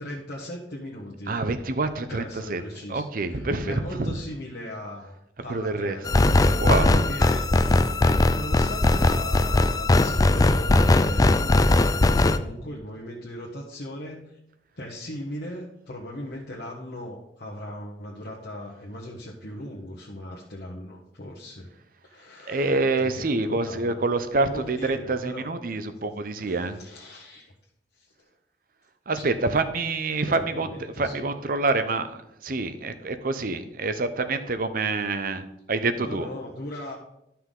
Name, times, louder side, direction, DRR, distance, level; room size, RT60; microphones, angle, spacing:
voice 1, 0.0-1.4 2.1-5.1 5.4-7.6 8.0-14.4 14.8-21.7 22.0-24.1 24.3-25.5 26.4-27.5 27.9-28.3 29.2-29.4 30.2-31.3 36.0-37.0, left 1 dB, 65° left, -3 dB, 1.2 m, -38 dB
voice 2, 1.3-2.6 2.9-4.1 5.5-6.0 6.3-7.1 22.5-26.8 29.1-30.7 31.0-36.3, right 3 dB, 55° right, 10 dB, 0.7 m, -27 dB
sound 1, 6.1-12.4, left 2 dB, 20° left, 0.4 m, -20 dB
12.0 x 5.7 x 3.8 m, 0.82 s
head